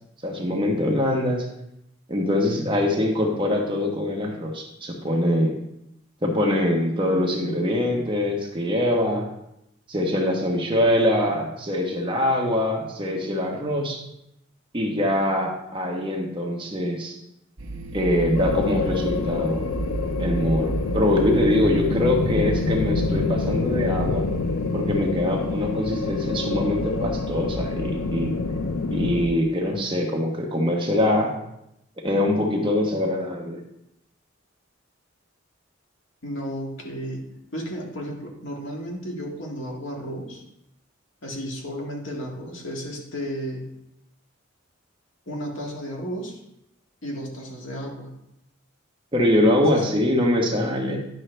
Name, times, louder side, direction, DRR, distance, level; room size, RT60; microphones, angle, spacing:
voice 1, 0.2-1.5 2.1-5.5 6.2-9.3 9.9-14.0 14.7-17.2 17.9-19.6 20.2-24.3 24.7-28.3 28.9-31.3 32.0-33.6 49.1-51.0, left 1 dB, 25° right, 0 dB, 1.2 m, -23 dB
sound 1, 17.6-29.3, right 3 dB, 80° right, 1.1 m, -34 dB
sound 2, 18.3-29.3, left 4 dB, 85° left, 0.5 m, -27 dB
voice 2, 36.2-40.4 41.2-43.7 45.3-46.4 47.0-48.1 49.7-49.9, equal, 65° left, -1 dB, 1.9 m, -33 dB
10.5 x 6.3 x 3.3 m, 0.81 s
head